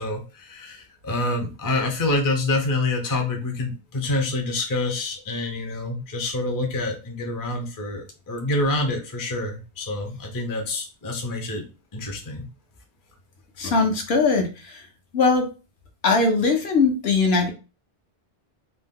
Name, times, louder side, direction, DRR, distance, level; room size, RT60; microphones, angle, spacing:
voice 1, 0.0-11.6 11.9-12.5, left 2 dB, 25° left, 2 dB, 0.4 m, -27 dB
voice 2, 13.6-14.8 15.1-15.5 16.0-17.5, left 4 dB, 70° left, 4 dB, 0.9 m, -20 dB
2.6 x 2.1 x 3.5 m, 0.31 s
omnidirectional pair, 1.2 m